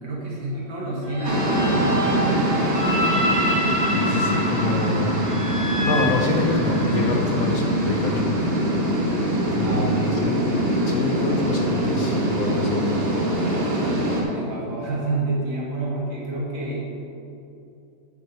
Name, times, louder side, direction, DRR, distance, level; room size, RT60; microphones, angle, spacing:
voice 1, 0.0-2.5 9.6-10.2 14.1-16.9, right 2 dB, 80° right, -5 dB, 2.6 m, -29 dB
sound 1, 1.0-7.1, left 1 dB, 15° right, 0.9 m, -27 dB
sound 2, 1.2-14.2, right 1 dB, 40° right, 1.3 m, -23 dB
voice 2, 3.9-5.1 5.8-8.3 9.5-10.5 10.9-12.8, left 2 dB, 60° left, 1 dB, 1.0 m, -26 dB
8.6 x 7.2 x 4.4 m, 2.8 s
omnidirectional pair, 2.1 m